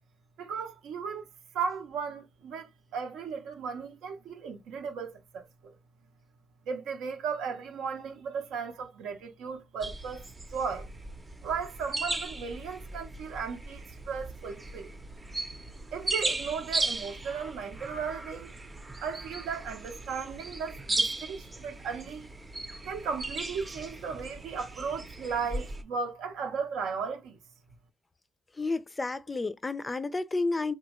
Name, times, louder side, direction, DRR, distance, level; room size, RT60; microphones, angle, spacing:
voice 1, 0.4-1.3 1.5-5.7 6.7-10.9 11.4-14.9 15.9-18.5 19.0-22.3 22.8-27.4, right 6 dB, 85° right, 0.7 m, -36 dB
sound 1, 9.8-25.8, right 2 dB, 20° right, 0.6 m, -37 dB
voice 2, 28.5-30.7, left 3 dB, 20° left, 0.3 m, -31 dB
3.3 x 2.3 x 2.9 m
cardioid pair, 90°, 0 cm